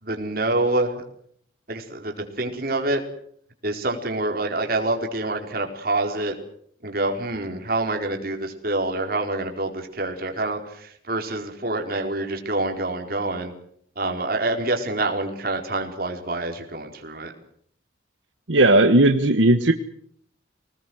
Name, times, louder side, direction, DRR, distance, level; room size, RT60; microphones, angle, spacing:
voice 1, 0.0-1.0 1.7-3.0 3.6-6.3 6.8-13.5 14.0-17.3, right 2 dB, 50° right, 3 dB, 4.5 m, -26 dB
voice 2, 18.5-19.7, right 2 dB, 80° right, 7 dB, 1.4 m, -16 dB
25.5 x 19.5 x 7.9 m, 0.65 s
head